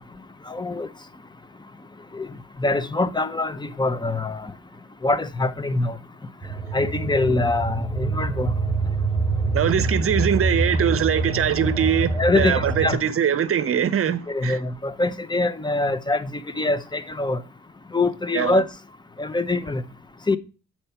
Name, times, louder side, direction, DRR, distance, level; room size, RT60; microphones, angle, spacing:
voice 1, 0.5-0.9 2.1-2.3 2.6-4.5 5.0-6.0 6.7-8.5 12.2-13.0 14.3-17.4 17.9-18.7 19.2-19.8 20.3-20.4, left 2 dB, 15° left, 0.6 m, -24 dB
sound 1, 6.4-12.9, right 3 dB, 5° right, 1.2 m, -25 dB
voice 2, 9.5-14.6 18.3-18.6, right 9 dB, 45° right, 0.8 m, -22 dB
7.8 x 4.4 x 5.7 m
cardioid pair, 90°, 30 cm